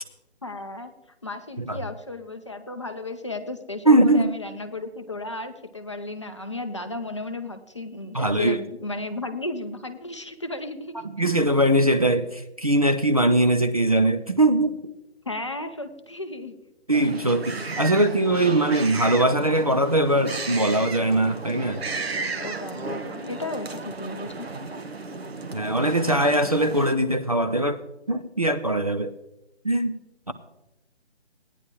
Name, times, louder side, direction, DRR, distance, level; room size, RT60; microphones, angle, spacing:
voice 1, 0.4-0.9 1.2-11.1 15.3-16.6 22.4-24.4, left 2 dB, 25° left, 7 dB, 0.5 m, -34 dB
voice 2, 3.9-4.3 8.1-8.6 11.1-14.8 16.9-21.8 25.5-27.8 28.1-29.1 29.6-30.0 30.3-30.4, right 1 dB, 35° right, 7 dB, 0.4 m, -21 dB
sound 1, 16.9-26.9, right 3 dB, 65° right, 1.2 m, -34 dB
16.5 x 9.8 x 3.0 m, 0.90 s
figure-of-eight pair, 155°, 34 cm